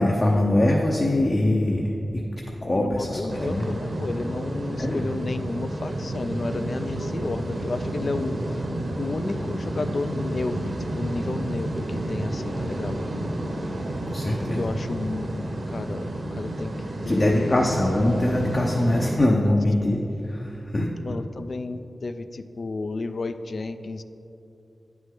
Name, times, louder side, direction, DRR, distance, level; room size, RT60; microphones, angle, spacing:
voice 1, 0.0-2.2 2.6-3.6 4.8-5.0 14.1-14.7 17.1-20.9, left 1 dB, 40° left, -1 dB, 0.7 m, -23 dB
voice 2, 2.7-8.7 9.0-13.1 14.4-16.7 17.0-17.7 18.7-19.6 21.0-24.0, left 3 dB, 60° left, 11 dB, 0.4 m, -32 dB
sound 1, 3.3-19.2, right 1 dB, 55° right, 0.8 m, -30 dB
9.4 x 6.0 x 3.8 m, 2.8 s
cardioid pair, 50°, 0 cm